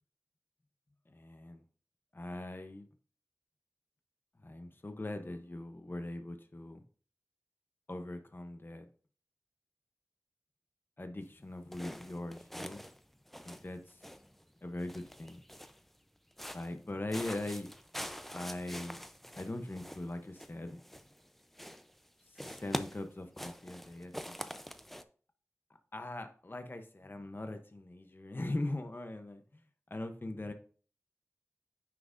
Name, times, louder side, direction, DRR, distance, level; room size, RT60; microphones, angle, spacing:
voice 1, 1.1-1.6 2.1-2.9 4.4-6.8 7.9-8.9 11.0-12.8 13.4-14.0 14.6-15.4 16.5-17.7 18.3-19.0 19.4-20.8 22.3-24.4 25.9-29.6 29.9-30.5, left 1 dB, 40° left, 7 dB, 0.8 m, -41 dB
sound 1, 11.7-13.0 13.3-14.4 14.8-15.9 16.3-16.8 17.1-21.3 21.5-22.1 22.4-25.0, equal, 5° left, 0.6 m, -44 dB
9.6 x 5.9 x 2.6 m, 0.42 s
wide cardioid pair, 45°, 5 cm